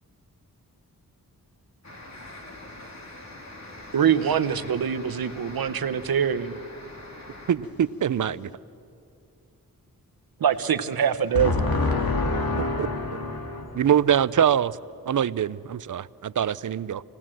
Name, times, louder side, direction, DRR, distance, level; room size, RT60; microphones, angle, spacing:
sound 1, 1.8-7.5, left 1 dB, 50° left, 3.1 m, -43 dB
voice 1, 3.9-6.6 10.4-11.6, right 8 dB, 80° right, 0.9 m, -24 dB
voice 2, 7.5-8.5 12.8-12.9 13.7-14.8 15.1-17.0, right 9 dB, 60° right, 0.5 m, -23 dB
voice 3, 11.3-13.9, left 3 dB, 80° left, 2.3 m, -26 dB
27.5 x 18.5 x 7.6 m
wide cardioid pair, 80°, 35 cm